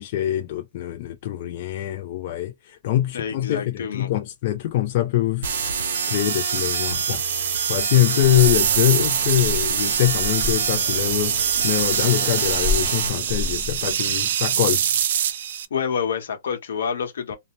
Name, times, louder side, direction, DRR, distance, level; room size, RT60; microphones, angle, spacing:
voice 1, 0.0-14.8, left 13 dB, 35° left, 0.3 m, -24 dB
voice 2, 3.1-4.1 15.7-17.4, left 7 dB, 75° left, 1.0 m, -27 dB
sound 1, 5.4-13.1, right 6 dB, 70° right, 0.8 m, -26 dB
sound 2, 6.2-15.6, right 9 dB, 55° right, 0.4 m, -25 dB
sound 3, 8.2-13.9, left 3 dB, 5° right, 0.7 m, -33 dB
2.6 x 2.0 x 3.0 m
hypercardioid pair, 175°, 0 cm